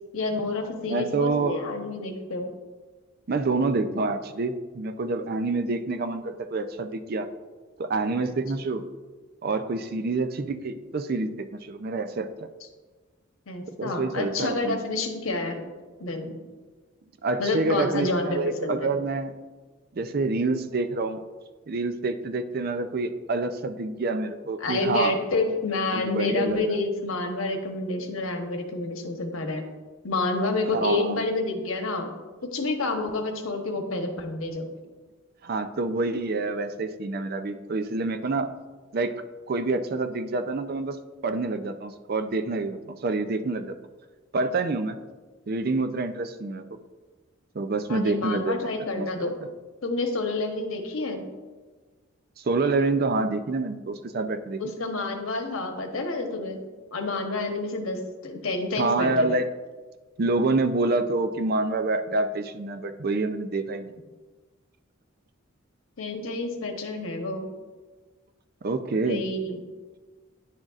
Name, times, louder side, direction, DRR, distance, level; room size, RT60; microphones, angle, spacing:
voice 1, 0.1-2.5 13.5-15.7 16.0-16.4 17.4-18.9 24.6-29.6 30.0-32.1 32.5-34.7 47.9-49.3 49.8-51.3 54.6-56.6 56.9-59.3 66.0-67.5 69.0-69.6, left 3 dB, 80° left, 4 dB, 1.0 m, -29 dB
voice 2, 0.9-1.6 3.3-7.3 7.8-8.8 9.4-12.3 13.8-14.8 17.2-19.3 19.9-21.2 21.7-25.2 25.9-26.8 30.7-31.2 35.4-38.5 38.9-39.2 39.5-41.0 41.2-43.8 44.3-45.0 45.5-46.6 47.5-49.3 52.4-54.6 58.8-59.5 60.2-63.9 68.6-69.2, right 3 dB, 45° right, 9 dB, 0.4 m, -27 dB
9.9 x 6.4 x 2.4 m, 1.3 s
head